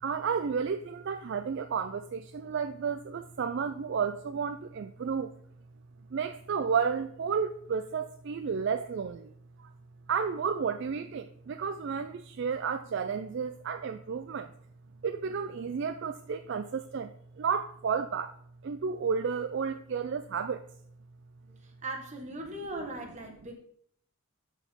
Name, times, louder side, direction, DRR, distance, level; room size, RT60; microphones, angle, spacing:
voice 1, 0.0-5.3 6.1-9.3 9.6-9.7 10.1-14.5 15.0-18.4 18.6-20.6 23.4-23.5, right 6 dB, 55° right, 9 dB, 0.4 m, -32 dB
voice 2, 21.8-23.5, right 2 dB, 35° right, 2 dB, 1.5 m, -38 dB
12.0 x 4.6 x 3.6 m, 0.64 s
head